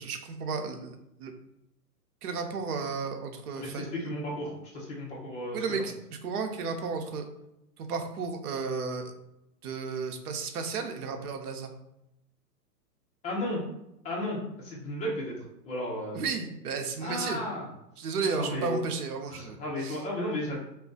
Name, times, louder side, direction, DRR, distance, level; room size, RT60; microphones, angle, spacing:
voice 1, 0.0-1.3 2.2-4.1 5.5-7.2 7.8-9.1 9.6-11.7 16.1-17.4 18.0-20.0, right 4 dB, 65° right, 5 dB, 0.7 m, -33 dB
voice 2, 3.6-5.8 13.2-13.6 14.0-15.4 15.6-16.2 17.0-17.7 18.2-18.8 19.3-20.6, left 1 dB, 15° left, -4 dB, 0.6 m, -34 dB
2.4 x 2.3 x 3.6 m, 0.86 s
hypercardioid pair, 130°, 49 cm